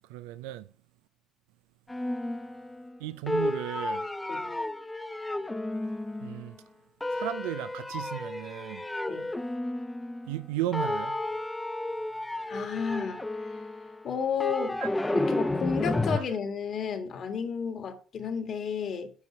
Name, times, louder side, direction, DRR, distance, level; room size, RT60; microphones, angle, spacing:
voice 1, 0.1-0.7 3.0-4.1 6.2-6.6 7.1-8.9 10.3-11.2 14.8-14.9 16.2-16.3, right 14 dB, 85° right, 0.4 m, -35 dB
sound 1, 1.9-3.0 3.3-6.6 7.0-10.5 10.7-16.2, left 1 dB, 15° left, 0.8 m, -32 dB
voice 2, 12.5-13.2 14.0-14.8 15.1-19.1, left 7 dB, 55° left, 1.8 m, -32 dB
8.1 x 5.3 x 5.7 m
hypercardioid pair, 60°, 0 cm